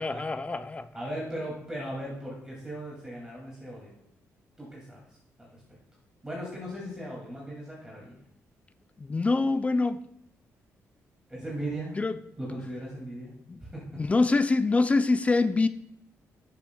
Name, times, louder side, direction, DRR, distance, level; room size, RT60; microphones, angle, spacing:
voice 1, 0.0-0.9 9.0-10.0 12.0-12.1 13.5-13.6 14.0-15.7, left 3 dB, 25° left, 0.4 m, -25 dB
voice 2, 0.9-3.9 4.6-5.0 5.4-5.6 6.2-8.2 11.3-11.9 12.4-13.3 13.6-13.8, right 1 dB, 15° right, 2.3 m, -37 dB
11.0 x 7.2 x 2.3 m
cardioid pair, 95°, 6 cm